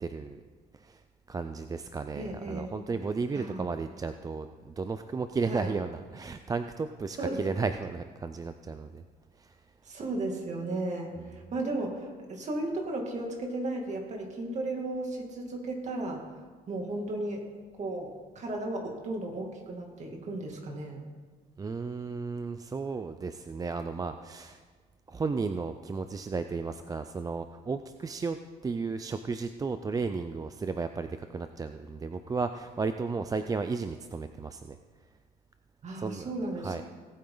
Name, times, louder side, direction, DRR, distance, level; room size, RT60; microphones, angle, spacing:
voice 1, 0.0-0.4 0.8-1.0 1.3-9.0 9.4-9.6 21.6-24.6 25.1-28.4 28.6-34.8 36.0-36.3 36.6-36.8, right 4 dB, 20° right, 9 dB, 0.4 m, -34 dB
voice 2, 2.1-2.8 3.3-3.7 5.5-5.7 7.2-7.5 9.8-16.2 16.7-17.5 17.8-21.0 35.8-36.7, right 2 dB, 45° right, 1 dB, 2.4 m, -35 dB
18.0 x 8.6 x 3.9 m, 1.5 s
cardioid pair, 110°, 17 cm